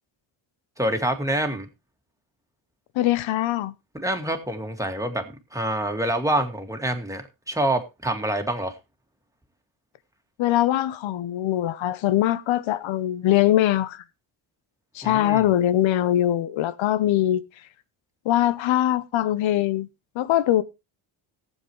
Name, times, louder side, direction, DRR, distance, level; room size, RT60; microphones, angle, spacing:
voice 1, 0.8-1.7 3.9-5.2 5.5-8.8 15.0-15.4, right 1 dB, 5° right, 2.2 m, -26 dB
voice 2, 2.9-3.7 10.4-14.0 14.9-17.4 18.2-19.9 20.1-20.6, left 13 dB, 70° left, 1.0 m, -22 dB
18.0 x 7.3 x 3.2 m
cardioid pair, 95°, 48 cm